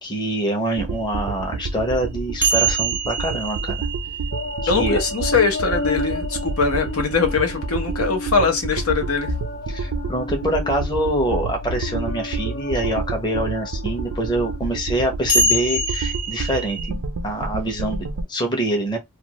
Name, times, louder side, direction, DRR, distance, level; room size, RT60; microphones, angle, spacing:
voice 1, 0.0-3.9 4.6-5.0 9.7-19.0, right 1 dB, 20° left, 0.8 m, -25 dB
sound 1, 0.8-18.2, right 3 dB, 85° right, 0.5 m, -29 dB
sound 2, 2.4-6.7 8.5-8.6 11.6-11.7 15.3-16.9, right 2 dB, 10° right, 0.5 m, -25 dB
sound 3, 4.3-14.6, left 3 dB, 50° left, 0.3 m, -32 dB
voice 2, 4.7-9.3, left 4 dB, 80° left, 1.0 m, -21 dB
2.5 x 2.4 x 2.9 m
head